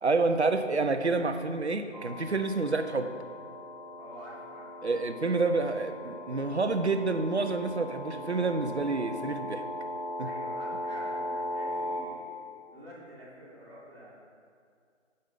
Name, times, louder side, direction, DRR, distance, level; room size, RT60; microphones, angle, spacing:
voice 1, 0.0-3.1 4.8-9.7 10.2-10.3, right 3 dB, 60° right, 8 dB, 0.7 m, -28 dB
sound 1, 1.9-12.0, left 1 dB, 25° left, 0.8 m, -38 dB
voice 2, 4.0-4.9 10.2-12.4 12.7-14.1, equal, 25° right, -9 dB, 2.2 m, -48 dB
8.8 x 5.5 x 5.6 m, 2.3 s
figure-of-eight pair, 165°, 38 cm